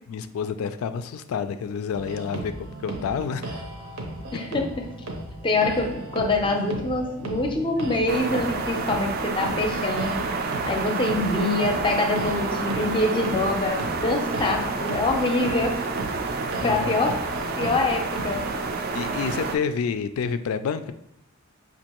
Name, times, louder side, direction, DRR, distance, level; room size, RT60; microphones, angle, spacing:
voice 1, 0.1-3.6 16.6-17.0 18.9-20.9, left 6 dB, 80° left, 12 dB, 0.3 m, -29 dB
sound 1, 1.9-18.7, right 2 dB, 80° right, 0.7 m, -36 dB
voice 2, 4.3-4.9 5.4-10.2 10.7-15.8 16.6-17.1 17.6-18.4, left 2 dB, 25° left, 3 dB, 0.5 m, -25 dB
sound 2, 8.1-19.6, right 3 dB, 45° right, 0.4 m, -29 dB
5.3 x 2.5 x 2.9 m, 0.75 s
head